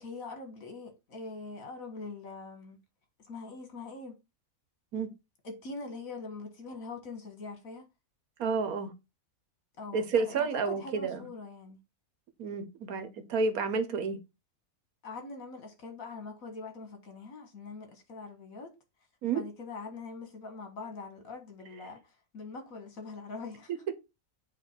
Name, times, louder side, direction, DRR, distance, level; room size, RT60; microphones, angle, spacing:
voice 1, 0.0-2.8 3.3-4.2 5.4-7.8 9.8-11.8 15.0-18.7 19.3-23.8, left 3 dB, 65° left, 1.9 m, -43 dB
voice 2, 8.4-8.9 9.9-11.3 12.4-14.2 19.2-19.4, right 4 dB, 70° right, 1.4 m, -30 dB
8.5 x 3.2 x 4.4 m
omnidirectional pair, 1.6 m